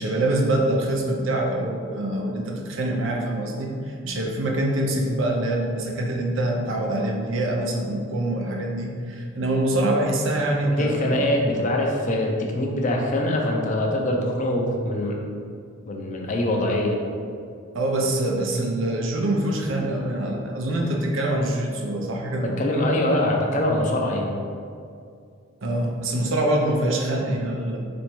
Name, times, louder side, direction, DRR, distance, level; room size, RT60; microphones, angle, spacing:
voice 1, 0.0-11.3 17.7-22.6 25.6-27.8, right 1 dB, 70° right, 1 dB, 0.6 m, -25 dB
voice 2, 10.8-15.2 15.9-17.0 22.4-24.3, left 1 dB, 40° left, 0 dB, 0.6 m, -23 dB
4.3 x 2.7 x 4.5 m, 2.4 s
head